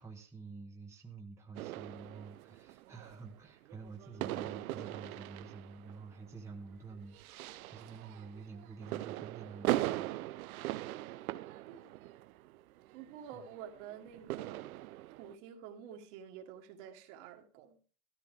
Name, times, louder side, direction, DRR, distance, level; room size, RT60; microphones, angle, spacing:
voice 1, 0.0-10.4 13.3-13.5, right 4 dB, 5° right, 1.2 m, -49 dB
sound 1, 1.5-15.3, right 16 dB, 75° right, 0.8 m, -40 dB
voice 2, 12.9-14.8 15.2-17.8, right 8 dB, 55° right, 1.9 m, -49 dB
13.5 x 11.5 x 3.6 m
supercardioid pair, 145°, 43 cm